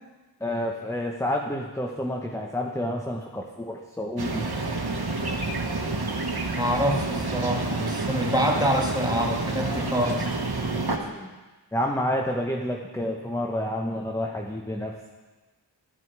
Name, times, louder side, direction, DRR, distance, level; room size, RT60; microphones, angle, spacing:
voice 1, 0.4-4.5 10.9-11.3 11.7-15.0, left 1 dB, 5° left, 2 dB, 0.8 m, -29 dB
sound 1, 4.2-11.0, right 2 dB, 60° right, 1.2 m, -28 dB
voice 2, 6.6-10.5, equal, 10° right, 0 dB, 1.7 m, -26 dB
11.0 x 9.4 x 4.7 m, 1.2 s
wide cardioid pair, 55°, 44 cm